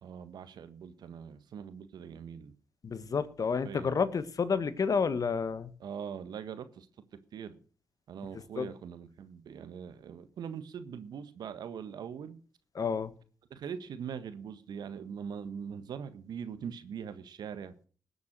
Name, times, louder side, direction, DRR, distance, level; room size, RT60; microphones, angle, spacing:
voice 1, 0.0-2.5 3.6-3.9 5.8-6.9 7.3-7.6 8.1-12.4 13.5-17.7, right 7 dB, 70° right, 1.4 m, -42 dB
voice 2, 2.8-5.7 8.6-8.7 12.7-13.1, left 5 dB, 55° left, 1.4 m, -30 dB
19.5 x 7.1 x 6.2 m
hypercardioid pair, 40°, 7 cm